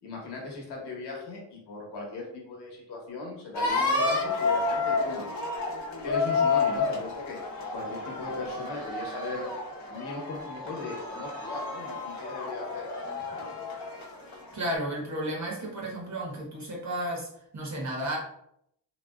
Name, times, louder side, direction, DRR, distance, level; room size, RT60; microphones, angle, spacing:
voice 1, 0.0-5.2 6.0-7.4 7.7-9.5 9.9-13.0, left 3 dB, 75° left, -1 dB, 1.0 m, -38 dB
sound 1, 3.5-14.7, left 4 dB, 45° left, 0.8 m, -30 dB
voice 2, 14.5-17.3 17.5-18.2, right 1 dB, 45° right, -2 dB, 0.8 m, -33 dB
2.5 x 2.2 x 2.2 m, 0.73 s
cardioid pair, 90°, 41 cm